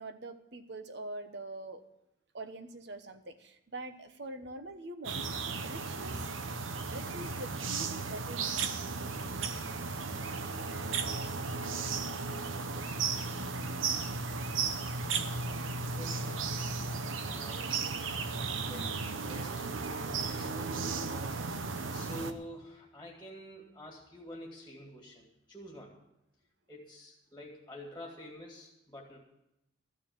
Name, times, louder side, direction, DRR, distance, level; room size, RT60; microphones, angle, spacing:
voice 1, 0.0-1.8 2.3-5.3 5.6-6.3 6.9-8.7, right 2 dB, 60° right, 9 dB, 1.0 m, -44 dB
sound 1, 5.0-22.3, right 4 dB, 85° right, 0.9 m, -35 dB
voice 2, 16.0-16.3 17.2-18.1 18.6-19.7 20.1-21.2 21.9-26.0 26.7-29.2, equal, 10° left, -1 dB, 2.2 m, -48 dB
13.5 x 6.8 x 9.1 m, 0.87 s
head